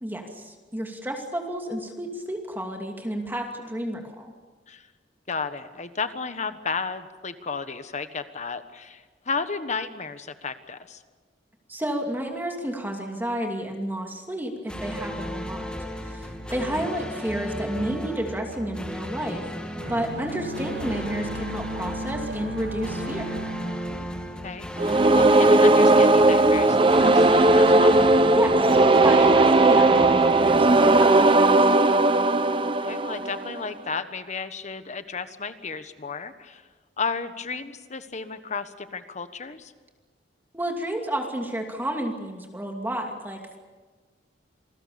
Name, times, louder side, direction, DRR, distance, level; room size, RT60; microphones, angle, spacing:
voice 1, 0.0-4.3 11.7-15.7 16.0-19.4 19.9-23.4 28.3-28.8 29.0-31.8 40.5-43.6, right 1 dB, 10° right, 2 dB, 2.6 m, -31 dB
voice 2, 5.3-11.0 16.6-16.8 24.4-28.0 32.6-36.6 37.0-39.7, left 4 dB, 40° left, 10 dB, 1.4 m, -33 dB
sound 1, 14.7-31.7, equal, 5° left, 2.4 m, -35 dB
sound 2, 19.8-24.8, right 1 dB, 85° right, 2.6 m, -36 dB
sound 3, 24.8-33.7, right 2 dB, 30° right, 0.9 m, -17 dB
28.0 x 20.0 x 7.1 m, 1.4 s
head